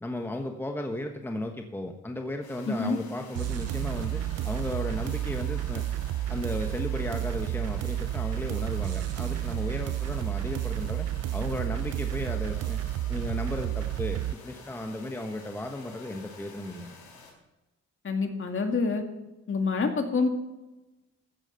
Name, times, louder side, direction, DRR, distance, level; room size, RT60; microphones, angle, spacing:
voice 1, 0.0-5.8 6.3-11.1 11.3-12.8 13.1-16.9, left 1 dB, 5° left, 4 dB, 1.2 m, -35 dB
sound 1, 2.4-17.3, left 4 dB, 85° left, 4.4 m, -50 dB
voice 2, 2.7-3.0 18.0-19.0 19.5-20.3, left 4 dB, 40° left, 4 dB, 2.2 m, -27 dB
sound 2, 3.3-14.3, right 13 dB, 55° right, 0.5 m, -31 dB
14.5 x 9.0 x 5.6 m, 1.0 s
cardioid pair, 90°, 30 cm